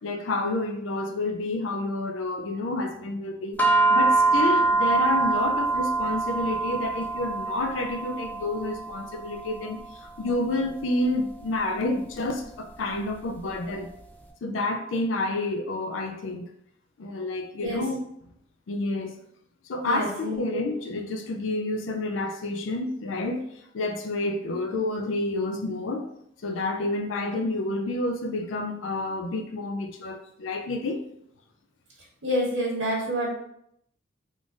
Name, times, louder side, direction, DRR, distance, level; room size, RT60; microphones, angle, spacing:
voice 1, 0.0-3.6 3.9-13.9 14.4-16.5 17.0-18.1 18.7-19.2 19.7-23.5 23.7-26.1 26.4-31.0, left 2 dB, 85° left, 0.4 m, -29 dB
sound 1, 3.6-14.1, right 3 dB, 10° left, 0.3 m, -26 dB
voice 2, 19.8-20.6 32.2-33.3, equal, 70° right, 1.2 m, -28 dB
3.6 x 2.5 x 3.7 m
head